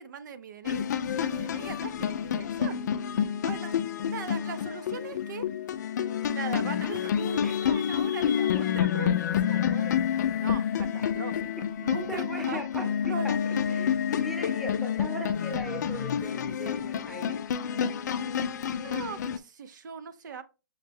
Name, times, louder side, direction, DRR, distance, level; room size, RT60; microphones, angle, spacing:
voice 1, 0.0-2.8 3.4-3.7 4.1-5.5 6.3-9.9 10.4-13.9 18.8-20.4, right 5 dB, 65° right, 0.6 m, -40 dB
sound 1, 0.6-19.4, left 8 dB, 60° left, 0.4 m, -29 dB
voice 2, 12.1-17.4, left 1 dB, ahead, 0.5 m, -39 dB
6.3 x 2.1 x 3.3 m
hypercardioid pair, 160°, 11 cm